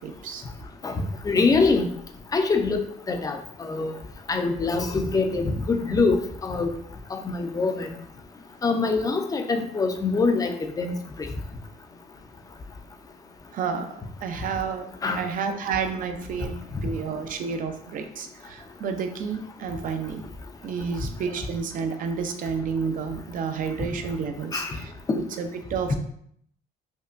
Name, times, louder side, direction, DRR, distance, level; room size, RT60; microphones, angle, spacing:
voice 1, 0.0-0.4 13.5-13.9 14.2-16.5 16.8-20.2 20.6-26.0, right 6 dB, 55° right, 6 dB, 0.5 m, -30 dB
voice 2, 1.2-1.9 2.3-3.9 4.3-6.7 7.1-7.9 8.6-10.9 15.0-15.2 24.5-24.8, left 4 dB, 20° left, 6 dB, 0.4 m, -24 dB
5.2 x 2.2 x 2.5 m, 0.67 s
cardioid pair, 110°, 17 cm